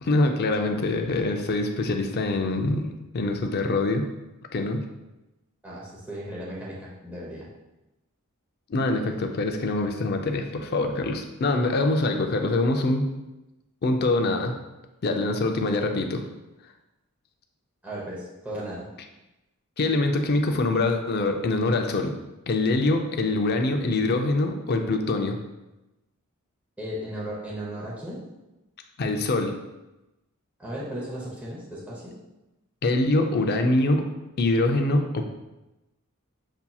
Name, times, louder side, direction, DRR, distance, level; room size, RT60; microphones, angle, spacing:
voice 1, 0.0-2.9 3.1-4.1 4.5-4.8 8.7-13.1 13.8-14.5 15.0-16.2 19.8-22.1 22.5-25.4 29.0-29.5 32.8-34.1 34.4-35.2, left 2 dB, 45° left, 4 dB, 0.4 m, -24 dB
voice 2, 5.6-7.5 17.8-18.9 26.8-28.2 30.6-32.1, equal, 5° right, -6 dB, 0.8 m, -36 dB
7.0 x 2.8 x 2.3 m, 1.0 s
head